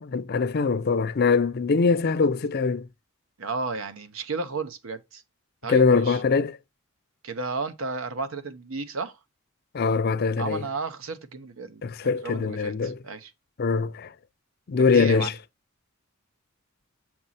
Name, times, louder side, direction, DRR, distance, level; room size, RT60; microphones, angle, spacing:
voice 1, 0.0-2.9 5.7-6.6 9.7-10.6 11.8-13.0 13.6-14.1 14.7-15.3, left 4 dB, 50° left, 0.5 m, -22 dB
voice 2, 3.4-5.2 5.6-6.2 7.2-9.2 10.4-13.3 14.8-15.3, right 4 dB, 80° right, 0.9 m, -33 dB
7.4 x 4.4 x 4.1 m
head